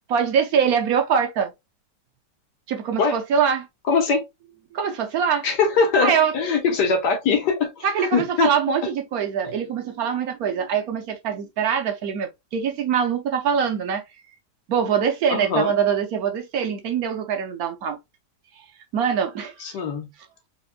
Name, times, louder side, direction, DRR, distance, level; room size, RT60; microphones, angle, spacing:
voice 1, 0.1-1.5 2.7-3.7 4.7-5.5 6.0-6.3 7.8-14.0 14.7-18.0 18.9-19.8, right 7 dB, 65° right, 1.1 m, -23 dB
voice 2, 3.9-4.2 5.4-8.5 15.3-15.7 19.6-20.1, left 5 dB, 75° left, 1.7 m, -22 dB
4.4 x 3.1 x 2.3 m
omnidirectional pair, 1.8 m